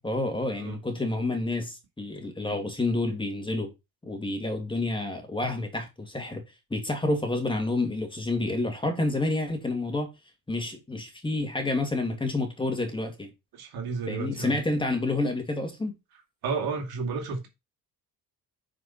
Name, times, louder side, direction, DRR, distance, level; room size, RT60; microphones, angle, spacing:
voice 1, 0.0-3.7 4.0-6.4 6.7-10.1 10.5-13.3 14.1-15.9, left 2 dB, 15° left, 2.4 m, -29 dB
voice 2, 13.5-14.6 16.4-17.5, right 5 dB, 75° right, 2.7 m, -32 dB
9.5 x 5.1 x 4.3 m
cardioid pair, 110°, 38 cm